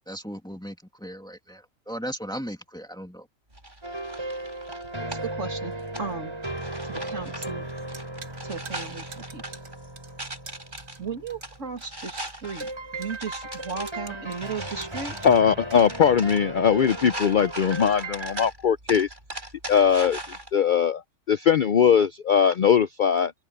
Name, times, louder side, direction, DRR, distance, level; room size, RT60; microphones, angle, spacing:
voice 1, 0.0-3.3, equal, 5° left, 2.3 m, -37 dB
sound 1, 3.5-20.5, right 1 dB, 35° right, 7.1 m, -40 dB
sound 2, 3.8-11.6 12.4-18.4, right 1 dB, 20° right, 5.1 m, -36 dB
voice 2, 4.9-6.3 6.9-7.7 8.4-9.6 11.0-15.1, right 5 dB, 70° right, 2.8 m, -36 dB
sound 3, 7.1-16.3, right 3 dB, 90° right, 3.0 m, -47 dB
voice 3, 15.2-19.1 19.7-20.2 20.5-21.0 21.3-23.3, left 7 dB, 55° left, 0.6 m, -20 dB
open air
omnidirectional pair, 1.4 m